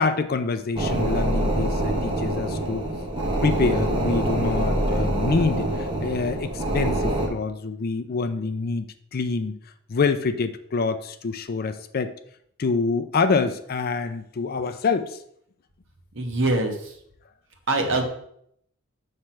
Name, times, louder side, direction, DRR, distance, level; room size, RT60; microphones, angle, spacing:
voice 1, 0.0-2.8 3.4-9.6 9.9-12.1 12.6-15.2, left 4 dB, 45° left, 10 dB, 0.4 m, -26 dB
sound 1, 0.8-7.3, right 1 dB, 25° right, 1.1 m, -25 dB
voice 2, 16.1-16.9 17.7-18.1, right 2 dB, 60° right, 3 dB, 1.2 m, -23 dB
7.4 x 3.3 x 5.7 m, 0.69 s
head